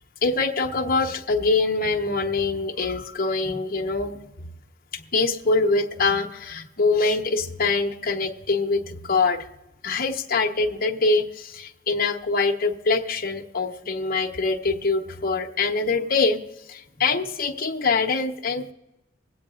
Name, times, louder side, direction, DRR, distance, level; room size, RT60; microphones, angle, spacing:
voice 1, 0.2-4.2 4.9-9.4 9.8-16.4 16.7-18.7, left 3 dB, 50° left, 4 dB, 0.9 m, -24 dB
24.5 x 8.6 x 2.4 m, 0.98 s
head